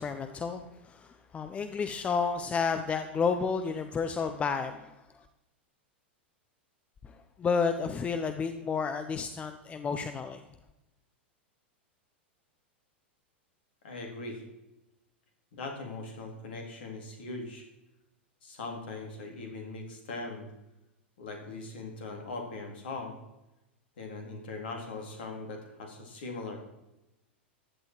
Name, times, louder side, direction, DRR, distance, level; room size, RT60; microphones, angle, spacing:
voice 1, 0.0-4.9 7.4-10.4, left 5 dB, 20° left, 8 dB, 0.9 m, -31 dB
voice 2, 13.8-14.4 15.5-17.6 18.4-20.5 21.2-23.2 24.0-26.6, left 3 dB, 60° left, 3 dB, 3.8 m, -40 dB
15.5 x 11.0 x 4.8 m, 0.93 s
figure-of-eight pair, 90°, 6 cm